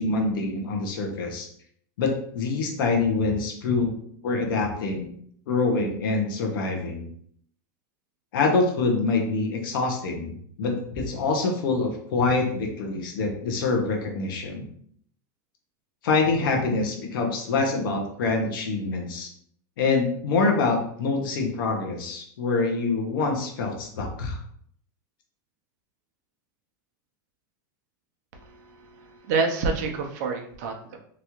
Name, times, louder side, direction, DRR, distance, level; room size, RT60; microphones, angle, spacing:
voice 1, 0.0-1.5 2.0-4.0 4.2-5.1 5.5-7.1 8.3-14.7 16.0-19.3 19.8-24.4, left 3 dB, 90° left, 2 dB, 0.8 m, -25 dB
voice 2, 29.0-31.0, right 4 dB, 50° right, 3 dB, 0.6 m, -27 dB
3.0 x 2.4 x 3.0 m, 0.63 s
supercardioid pair, 175°, 11 cm